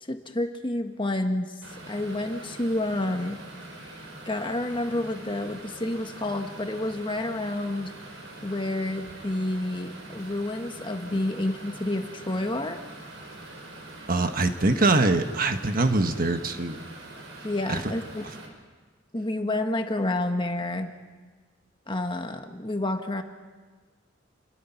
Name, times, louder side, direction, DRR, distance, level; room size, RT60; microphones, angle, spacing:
voice 1, 0.0-1.5 1.9-3.4 4.2-7.9 8.4-12.8 17.4-18.2 19.1-20.9 21.9-23.2, left 1 dB, 25° left, 5 dB, 1.5 m, -29 dB
sound 1, 1.6-18.5, right 2 dB, 65° right, 5.0 m, -44 dB
voice 2, 14.1-16.8 17.7-17.9, right 2 dB, 45° right, 7 dB, 1.4 m, -23 dB
29.0 x 22.5 x 5.9 m, 1.4 s
head